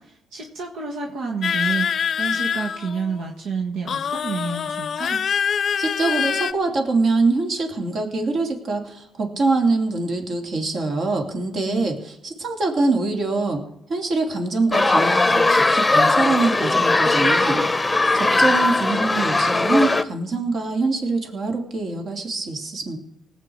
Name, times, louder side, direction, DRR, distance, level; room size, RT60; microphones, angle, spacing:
voice 1, 0.0-5.2 11.6-11.8, right 5 dB, 85° right, 1 dB, 1.5 m, -29 dB
sound 1, 1.4-3.2 3.9-6.5, left 7 dB, 50° left, 0.6 m, -25 dB
voice 2, 5.8-13.6 13.9-17.7 18.1-23.0, right 3 dB, 55° right, 3 dB, 2.9 m, -24 dB
sound 2, 14.7-20.0, left 2 dB, 15° left, 0.8 m, -19 dB
19.0 x 8.1 x 4.7 m, 0.80 s
cardioid pair, 90°, 0 cm